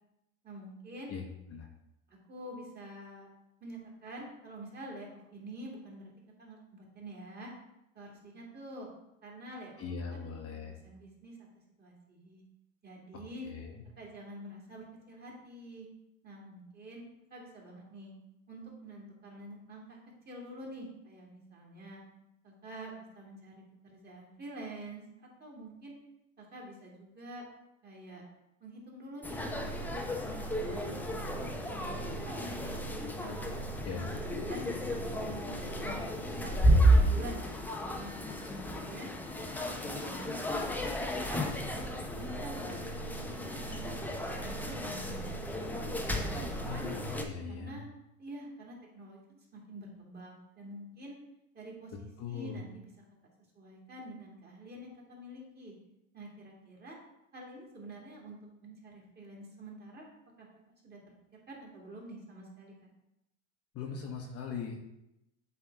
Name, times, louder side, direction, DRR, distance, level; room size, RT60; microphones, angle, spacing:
voice 1, 0.4-1.1 2.1-3.3 3.6-6.1 6.4-7.5 7.9-8.9 9.2-9.8 10.1-10.3 10.8-11.5 11.8-12.4 12.8-13.4 14.0-15.9 16.2-17.0 17.3-18.1 18.5-20.0 20.3-22.0 22.4-23.5 23.9-25.9 26.4-27.4 27.8-28.2 28.6-32.8 33.2-36.0 36.3-38.2 38.6-39.1 39.6-41.6 42.1-43.9 44.3-45.6 46.0-46.9 47.5-47.9 48.2-51.2 51.5-52.9 53.2-55.7 56.1-57.0 57.3-60.1 60.4-60.5 60.8-61.0 61.5-62.9, right 1 dB, 25° right, -2 dB, 2.4 m, -47 dB
voice 2, 9.8-10.7 13.4-13.8 33.8-34.1 46.6-47.8 52.2-52.6 63.7-64.8, left 5 dB, 35° left, 1 dB, 1.1 m, -40 dB
sound 1, 29.2-47.2, right 1 dB, 5° left, 0.7 m, -32 dB
8.0 x 3.5 x 4.5 m, 0.85 s
hypercardioid pair, 105°, 39 cm